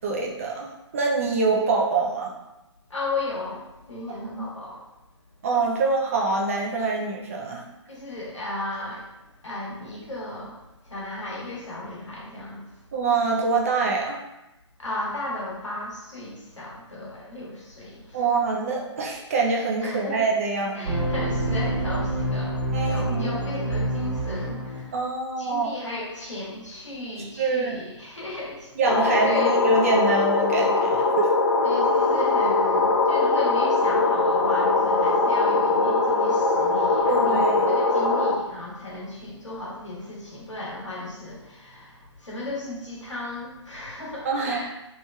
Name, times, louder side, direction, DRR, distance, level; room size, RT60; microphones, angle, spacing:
voice 1, 0.0-2.4 4.3-4.5 5.4-7.6 12.9-14.2 18.1-20.9 22.7-23.4 24.9-25.7 27.4-27.8 28.8-31.3 37.1-37.8 44.2-44.7, right 4 dB, 30° right, -1 dB, 0.4 m, -25 dB
voice 2, 2.9-4.8 7.9-9.1 9.4-10.6 10.8-12.6 14.8-18.2 19.8-20.2 20.7-24.9 25.4-28.8 29.3-29.6 31.6-44.7, left 2 dB, 80° left, -5 dB, 1.1 m, -35 dB
sound 1, 20.8-24.8, right 1 dB, 60° right, 1.3 m, -27 dB
sound 2, 28.9-38.3, left 3 dB, 50° left, 0.4 m, -21 dB
3.1 x 2.9 x 2.2 m, 0.96 s
figure-of-eight pair, 135°, 16 cm